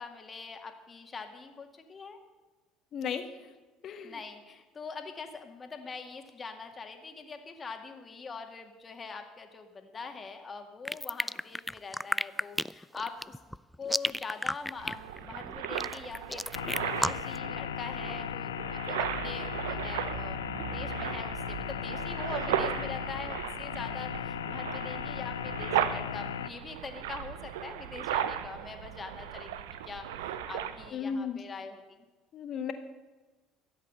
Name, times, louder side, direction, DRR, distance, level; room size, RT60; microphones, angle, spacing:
voice 1, 0.0-2.2 4.0-13.4 13.8-20.4 20.7-29.5 29.8-32.0, left 4 dB, 30° left, 5 dB, 2.0 m, -43 dB
voice 2, 2.9-3.5 3.8-4.2 30.9-31.4 32.3-32.7, left 6 dB, 50° left, 8 dB, 1.5 m, -35 dB
sound 1, 10.8-17.4, equal, ahead, 0.3 m, -32 dB
sound 2, 14.8-30.9, right 10 dB, 80° right, 0.7 m, -36 dB
sound 3, 16.5-26.5, left 10 dB, 90° left, 0.4 m, -37 dB
13.5 x 8.0 x 7.8 m, 1.2 s
hypercardioid pair, 65°, 0 cm